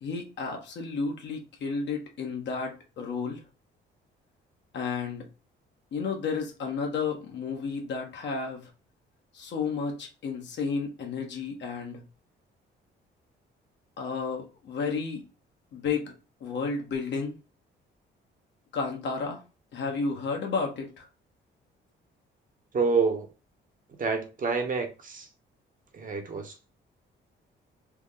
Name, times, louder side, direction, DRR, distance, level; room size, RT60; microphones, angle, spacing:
voice 1, 0.0-3.4 4.7-5.2 5.9-8.7 9.3-12.0 14.0-15.2 15.7-16.1 16.4-17.4 18.7-19.4 19.7-21.1, left 5 dB, 65° left, 1.2 m, -32 dB
voice 2, 22.7-23.3 24.0-25.3 25.9-26.7, right 4 dB, 45° right, 0.9 m, -28 dB
3.4 x 2.1 x 3.8 m
cardioid pair, 90°, 20 cm